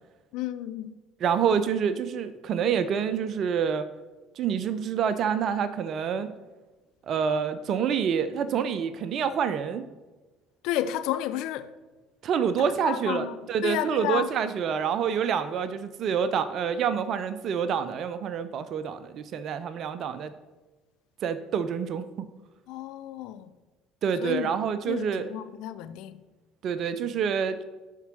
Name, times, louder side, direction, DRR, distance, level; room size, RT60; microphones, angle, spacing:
voice 1, 0.3-1.0 10.6-11.7 12.8-14.3 22.7-23.5 24.2-24.5 24.9-26.2, left 12 dB, 70° left, 0.5 m, -32 dB
voice 2, 1.2-3.9 4.4-6.3 7.1-9.9 12.2-20.3 21.2-22.0 24.0-25.3 26.6-27.6, right 7 dB, 55° right, 0.6 m, -27 dB
11.5 x 4.6 x 6.0 m
hypercardioid pair, 65°, 0 cm